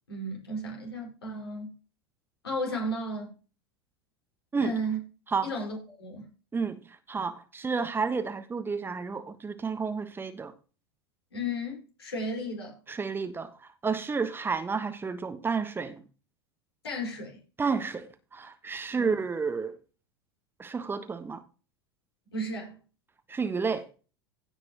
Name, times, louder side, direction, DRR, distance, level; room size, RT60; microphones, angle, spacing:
voice 1, 0.1-1.7 2.4-3.3 4.6-5.0 5.4-6.3 11.3-12.8 16.8-17.4 18.9-19.2 22.3-22.8, equal, 75° left, 5.3 m, -34 dB
voice 2, 6.5-10.5 12.9-16.0 17.6-19.8 20.6-21.4 23.3-23.9, right 5 dB, 15° right, 1.3 m, -31 dB
16.5 x 6.1 x 3.0 m
figure-of-eight pair, 85°, 13 cm